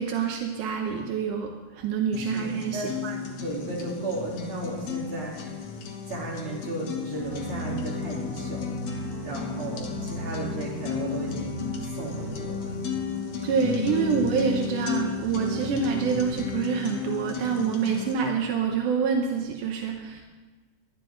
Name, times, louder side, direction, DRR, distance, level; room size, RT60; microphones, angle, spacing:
voice 1, 0.0-3.2 13.4-20.2, right 6 dB, 75° right, 2 dB, 1.9 m, -27 dB
sound 1, 2.1-18.1, left 7 dB, 60° left, 2.0 m, -34 dB
voice 2, 2.2-5.6 6.1-11.6 11.8-12.7, right 2 dB, 35° right, -5 dB, 4.1 m, -35 dB
sound 2, 7.1-16.3, right 1 dB, 10° left, 1.3 m, -38 dB
19.5 x 12.0 x 3.9 m, 1.3 s
omnidirectional pair, 4.8 m